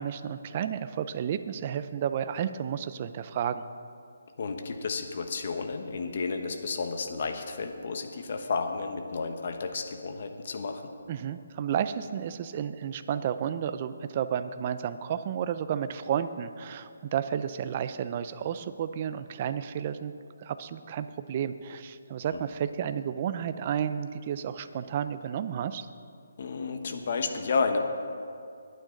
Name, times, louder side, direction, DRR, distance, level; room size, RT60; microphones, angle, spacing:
voice 1, 0.0-3.6 11.1-20.1 20.4-25.9, right 9 dB, 30° right, 12 dB, 0.5 m, -32 dB
voice 2, 4.4-10.9 26.4-27.8, left 4 dB, 50° left, 6 dB, 1.2 m, -32 dB
21.5 x 9.1 x 3.9 m, 2.4 s
hypercardioid pair, 165°, 0 cm